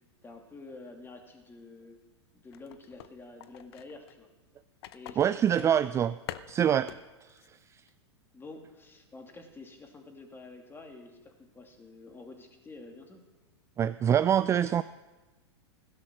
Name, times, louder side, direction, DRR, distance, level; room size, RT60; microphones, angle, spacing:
voice 1, 0.2-2.0 2.3-4.3 4.9-6.0 6.6-6.9 8.3-13.2, left 3 dB, 15° left, 3 dB, 2.7 m, -49 dB
sound 1, 2.5-4.1 4.8-7.0 7.3-7.5 7.9-8.0, left 12 dB, 60° left, 0.8 m, -45 dB
voice 2, 5.2-6.1 6.5-6.9 13.8-14.8, right 9 dB, 20° right, 14 dB, 0.4 m, -24 dB
16.5 x 11.5 x 6.3 m, 1.2 s
hypercardioid pair, 105°, 15 cm